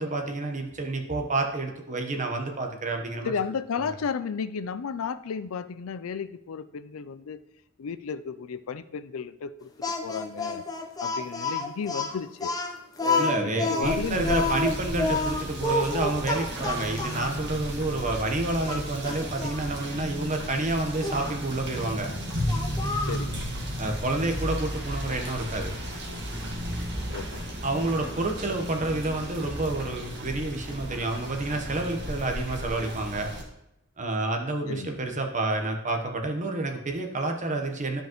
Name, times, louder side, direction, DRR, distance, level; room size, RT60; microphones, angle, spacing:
voice 1, 0.0-3.3 13.2-22.1 23.8-25.7 27.6-33.3 34.0-38.0, right 2 dB, 35° right, 3 dB, 1.0 m, -29 dB
voice 2, 3.2-7.4 7.8-9.7 10.0-10.7 11.0-12.5 13.0-14.4 23.1-23.4 27.1-27.4 34.7-35.0, left 6 dB, 75° left, 13 dB, 0.4 m, -33 dB
Speech, 9.8-17.4 18.0-18.2 18.7-19.6 21.0-21.3 22.5-23.2, left 3 dB, 20° left, 0.8 m, -29 dB
Rain / Motor vehicle (road), 13.8-33.4, equal, 55° right, 1.5 m, -34 dB
12.5 x 5.1 x 3.0 m, 0.85 s
head